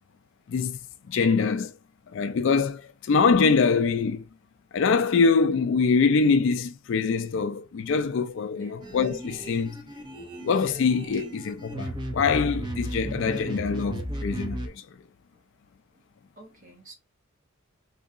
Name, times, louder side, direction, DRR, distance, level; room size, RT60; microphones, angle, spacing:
voice 1, 0.5-0.8 1.1-1.7 2.1-4.2 4.7-9.8 10.4-14.8, left 5 dB, 60° left, 0.3 m, -24 dB
sound 1, 8.8-14.7, right 1 dB, 20° right, 0.4 m, -35 dB
voice 2, 16.4-16.9, right 3 dB, 35° right, 0.8 m, -51 dB
3.7 x 2.7 x 2.4 m
head